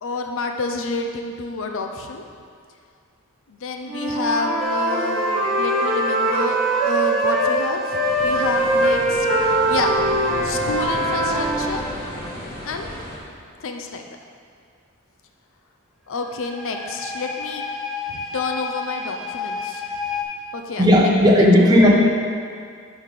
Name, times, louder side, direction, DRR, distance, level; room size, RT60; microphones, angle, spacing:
voice 1, 0.0-2.2 3.5-8.0 8.2-10.0 10.4-11.8 12.6-12.9 13.6-14.2 16.1-17.6 18.1-19.8 20.5-21.1, left 3 dB, 60° left, 4 dB, 0.6 m, -29 dB
Wind instrument woodwind instrument, 3.9-7.6 7.9-11.7, right 1 dB, 50° right, 2.1 m, -22 dB
sound 1, 4.6-12.4 16.2-20.2, equal, ahead, 0.7 m, -30 dB
sound 2, 8.0-13.2, equal, 25° left, 2.2 m, -34 dB
voice 2, 20.8-21.9, left 1 dB, 20° right, -4 dB, 1.1 m, -14 dB
5.9 x 5.4 x 6.5 m, 2.1 s
head